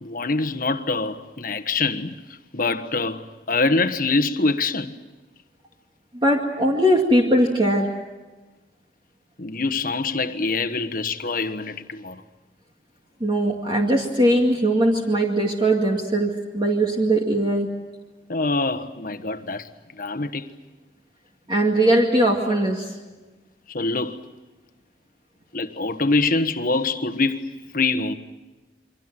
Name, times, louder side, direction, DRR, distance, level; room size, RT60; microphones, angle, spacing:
voice 1, 0.0-2.2 2.5-5.0 9.4-12.2 18.3-19.7 20.0-20.5 23.7-24.2 25.5-28.1, left 3 dB, 50° left, 1.3 m, -24 dB
voice 2, 6.1-7.9 13.2-17.7 21.5-22.9, right 1 dB, 25° right, 2.3 m, -20 dB
29.0 x 23.5 x 7.6 m
head